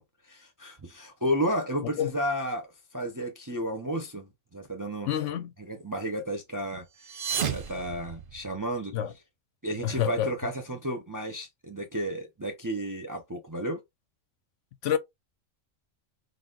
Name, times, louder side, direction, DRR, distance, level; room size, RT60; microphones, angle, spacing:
voice 1, 0.0-5.1 5.6-9.0 9.6-13.8, equal, 20° right, 0.5 m, -33 dB
voice 2, 5.1-5.5 8.9-9.1 9.8-10.3 14.8-15.0, left 10 dB, 70° left, 0.9 m, -27 dB
sound 1, 6.9-8.8, right 7 dB, 50° right, 0.7 m, -33 dB
4.0 x 3.4 x 2.4 m
omnidirectional pair, 1.4 m